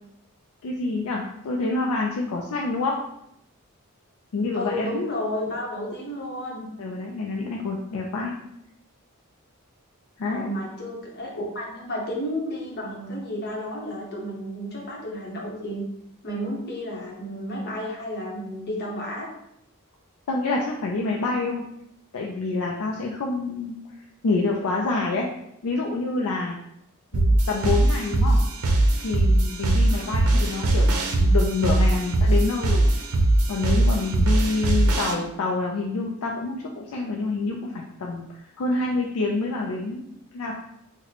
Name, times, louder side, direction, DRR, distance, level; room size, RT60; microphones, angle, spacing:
voice 1, 0.6-3.0 4.3-4.9 6.8-8.3 10.2-10.5 20.3-21.6 22.1-23.8 24.2-25.3 25.6-26.6 27.1-28.4 29.0-32.9 33.5-40.0 40.3-40.6, left 3 dB, 70° left, -1 dB, 0.4 m, -27 dB
voice 2, 4.5-6.7 10.2-15.8 16.2-19.3 29.9-30.2, equal, 50° left, -2 dB, 0.8 m, -32 dB
sound 1, 27.1-35.1, right 1 dB, 85° right, 0.5 m, -20 dB
3.0 x 2.1 x 3.9 m, 0.79 s
head